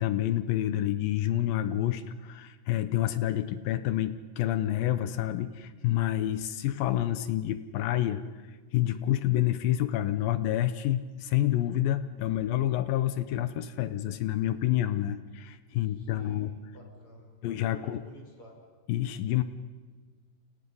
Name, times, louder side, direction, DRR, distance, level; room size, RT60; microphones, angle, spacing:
voice 1, 0.0-8.2 8.7-16.5 17.4-18.0 18.9-19.4, left 13 dB, 75° left, 12 dB, 2.2 m, -28 dB
voice 2, 15.8-17.3 17.6-18.5, equal, 30° left, 1 dB, 6.1 m, -52 dB
29.0 x 28.0 x 5.5 m, 1.4 s
omnidirectional pair, 4.9 m